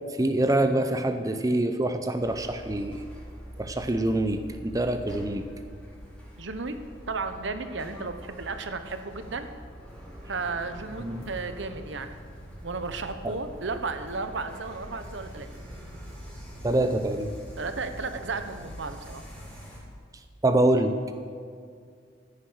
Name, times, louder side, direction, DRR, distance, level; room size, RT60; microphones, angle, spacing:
voice 1, 0.2-3.0 3.6-5.4 11.0-11.2 13.2-13.3 16.6-17.3 20.4-21.1, right 1 dB, 20° right, 7 dB, 0.6 m, -25 dB
sound 1, 2.1-19.8, equal, 5° left, 4.0 m, -44 dB
voice 2, 6.4-6.8 7.1-9.5 10.3-12.1 12.6-15.5 17.6-19.2, right 4 dB, 70° right, 9 dB, 1.0 m, -34 dB
14.5 x 10.0 x 6.3 m, 2.2 s
head